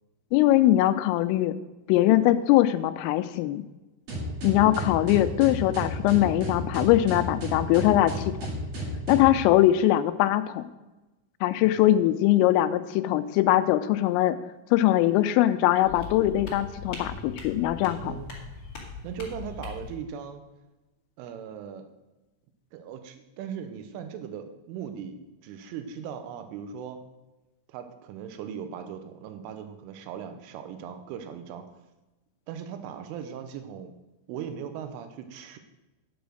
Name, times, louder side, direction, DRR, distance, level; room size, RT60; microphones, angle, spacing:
voice 1, 0.3-1.6 1.9-3.6 4.4-8.3 9.1-10.7 11.4-14.4 14.7-18.1, left 14 dB, 85° left, 11 dB, 3.2 m, -21 dB
sound 1, 4.1-9.4, equal, 45° right, 2.3 m, -33 dB
sound 2, 15.8-20.0, left 4 dB, 45° left, 1.5 m, -40 dB
voice 2, 18.0-18.3 19.0-20.4 21.2-21.9 22.7-27.0 27.7-31.7 32.5-33.9 34.3-35.6, right 8 dB, 85° right, 8 dB, 3.3 m, -39 dB
10.0 x 7.1 x 6.3 m, 1.1 s
omnidirectional pair, 5.8 m